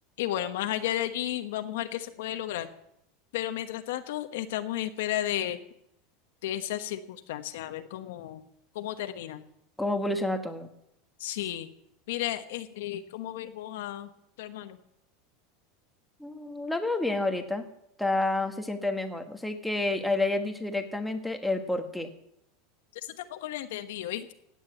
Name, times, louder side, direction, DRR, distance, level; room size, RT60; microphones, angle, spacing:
voice 1, 0.2-2.7 3.3-5.6 6.4-8.5 8.7-9.4 11.2-11.7 12.1-14.1 14.4-14.8 22.9-24.3, left 13 dB, 75° left, 8 dB, 1.1 m, -33 dB
voice 2, 9.8-10.7 16.2-17.6 18.0-22.1, left 2 dB, ahead, 5 dB, 1.4 m, -29 dB
16.5 x 9.1 x 7.9 m, 0.78 s
supercardioid pair, 160°, 0 cm